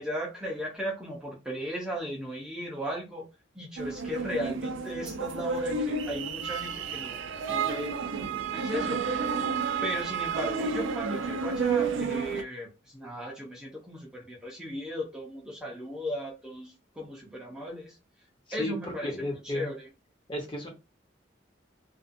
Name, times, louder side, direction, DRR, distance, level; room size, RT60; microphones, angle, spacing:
voice 1, 0.0-3.2 3.5-7.2 7.5-8.0 8.5-9.0 9.8-18.0 18.5-19.9, equal, 5° right, -3 dB, 0.6 m, -36 dB
sound 1, 3.8-12.4, right 5 dB, 85° right, 0.4 m, -31 dB
voice 2, 19.0-19.7 20.3-20.7, left 1 dB, 25° left, 0 dB, 0.8 m, -33 dB
2.5 x 2.3 x 2.5 m, 0.28 s
head